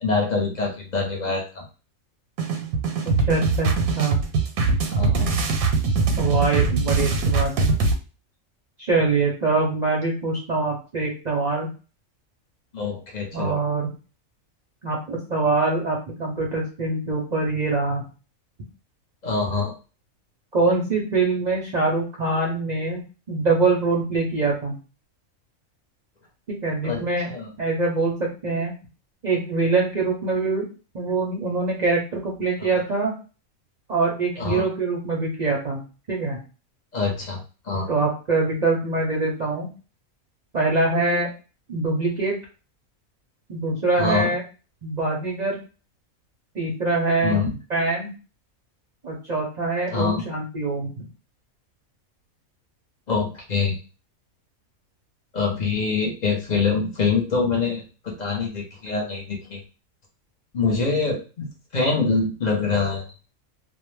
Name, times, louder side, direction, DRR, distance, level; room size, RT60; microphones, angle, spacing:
voice 1, 0.0-1.6 4.9-5.4 12.7-13.6 19.2-19.7 26.8-27.5 32.6-32.7 34.4-34.7 36.9-37.4 37.7-37.9 44.0-44.3 47.2-47.6 49.9-50.3 53.1-53.8 55.3-59.6 60.5-63.0, left 4 dB, 55° left, 0 dB, 0.5 m, -25 dB
sound 1, 2.4-7.9, right 4 dB, 85° right, 1.0 m, -22 dB
voice 2, 3.0-4.2 6.1-7.5 8.8-11.7 13.3-13.9 14.8-18.0 20.5-24.7 26.5-27.3 27.6-28.7 29.2-30.7 30.9-33.1 33.9-35.8 36.1-36.4 37.9-39.7 40.5-41.3 41.7-42.4 43.5-44.4 44.8-45.6 46.5-47.4 47.7-48.1 49.0-51.0, right 3 dB, 55° right, -2 dB, 0.5 m, -24 dB
2.5 x 2.0 x 3.0 m, 0.34 s
omnidirectional pair, 1.5 m